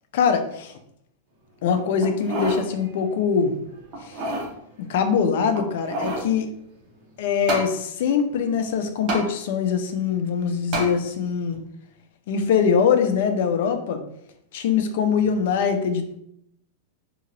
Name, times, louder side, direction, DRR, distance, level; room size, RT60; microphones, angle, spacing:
voice 1, 0.1-0.7 1.6-3.5 4.0-4.2 4.9-6.5 7.2-11.6 12.3-14.0 14.5-16.2, left 6 dB, 65° left, 7 dB, 0.5 m, -22 dB
sound 1, 2.0-2.7 3.1-3.2 3.9-4.5 5.5-6.3 7.5-7.7 9.1-9.3 10.7-10.9 11.5-11.6, right 1 dB, 40° right, 1.0 m, -28 dB
2.9 x 2.4 x 3.0 m, 0.72 s
supercardioid pair, 140°, 0 cm